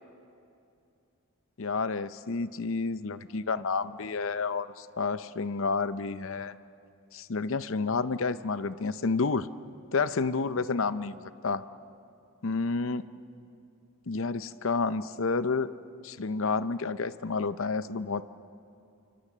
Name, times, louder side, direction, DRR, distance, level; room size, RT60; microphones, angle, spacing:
voice 1, 1.6-6.5 7.1-9.5 9.9-11.6 12.4-13.0 14.1-15.7 16.0-18.2, left 4 dB, 60° left, 14 dB, 0.6 m, -30 dB
28.5 x 25.0 x 7.4 m, 2.6 s
head